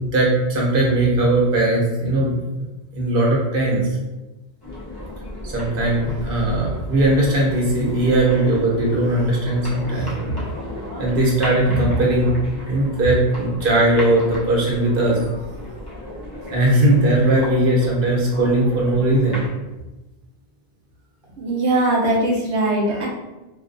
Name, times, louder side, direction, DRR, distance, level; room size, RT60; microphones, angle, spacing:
voice 1, 0.1-2.4 3.0-3.8 5.4-10.4 11.0-12.4 12.7-15.2 16.5-19.4, right 1 dB, 55° right, -3 dB, 0.9 m, -19 dB
sound 1, 4.6-19.5, left 1 dB, 25° left, 0.6 m, -34 dB
voice 2, 21.4-23.1, right 1 dB, 85° right, -2 dB, 1.0 m, -20 dB
2.5 x 2.3 x 2.5 m, 1.1 s
omnidirectional pair, 1.1 m